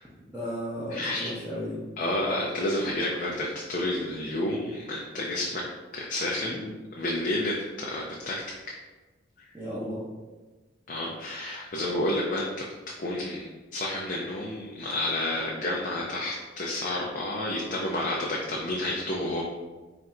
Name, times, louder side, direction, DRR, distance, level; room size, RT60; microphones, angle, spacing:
voice 1, 0.2-1.8 6.4-6.7 9.5-10.0, equal, 5° right, -11 dB, 0.7 m, -34 dB
voice 2, 0.9-1.3 2.0-5.6 5.9-6.6 6.9-8.6 10.9-12.7 13.0-19.4, left 1 dB, 40° left, -3 dB, 0.4 m, -30 dB
3.3 x 2.5 x 4.1 m, 1.2 s
head